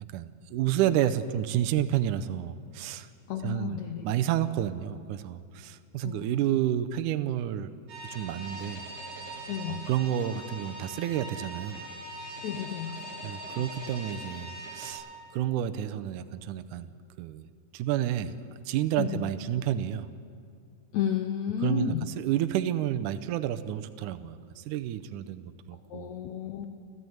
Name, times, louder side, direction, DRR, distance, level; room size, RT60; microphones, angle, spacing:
voice 1, 0.0-3.1 3.4-7.7 8.0-8.8 9.7-11.8 13.2-15.0 15.3-16.9 17.2-17.5 17.7-18.4 18.7-20.1 21.6-26.1, right 11 dB, 85° right, 9 dB, 1.8 m, -30 dB
voice 2, 3.3-4.1 6.0-6.4 9.5-9.8 12.4-12.9 13.5-13.7 19.0-19.2 20.9-22.1 25.9-26.7, left 9 dB, 75° left, 5 dB, 1.7 m, -32 dB
sound 1, 7.9-14.9, right 1 dB, 50° right, 5.5 m, -41 dB
30.0 x 12.5 x 7.9 m, 2.3 s
omnidirectional pair, 4.4 m